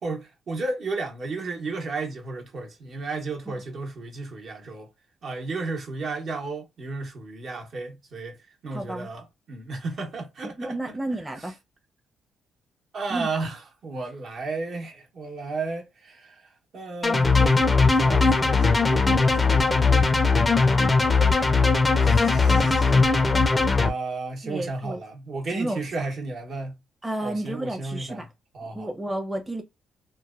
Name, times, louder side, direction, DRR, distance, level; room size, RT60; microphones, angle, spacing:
voice 1, 0.0-4.9 5.2-8.4 8.6-10.8 12.9-16.4 16.7-17.5 17.8-20.4 22.0-26.8 27.2-28.2 28.5-28.9, right 3 dB, 60° right, 0.9 m, -33 dB
voice 2, 8.7-9.1 10.6-11.6 13.1-13.3 22.5-22.8 24.4-25.0 25.5-25.9 27.0-28.3 28.7-29.6, right 1 dB, 10° right, 0.7 m, -31 dB
sound 1, 17.0-23.9, left 4 dB, 25° left, 0.5 m, -19 dB
3.0 x 2.1 x 2.3 m
cardioid pair, 90°, 0 cm